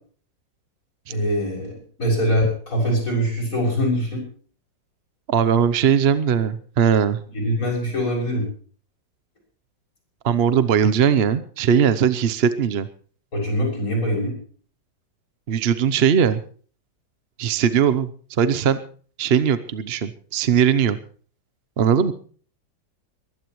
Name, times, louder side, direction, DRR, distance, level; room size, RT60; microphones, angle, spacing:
voice 1, 1.1-4.2 7.3-8.5 13.3-14.4, equal, 45° left, -1 dB, 7.2 m, -23 dB
voice 2, 5.3-7.2 10.2-12.9 15.5-16.4 17.4-18.1 18.4-18.8 19.2-21.0 21.8-22.1, right 8 dB, 55° right, 12 dB, 0.7 m, -19 dB
22.0 x 16.5 x 3.1 m, 0.44 s
omnidirectional pair, 2.0 m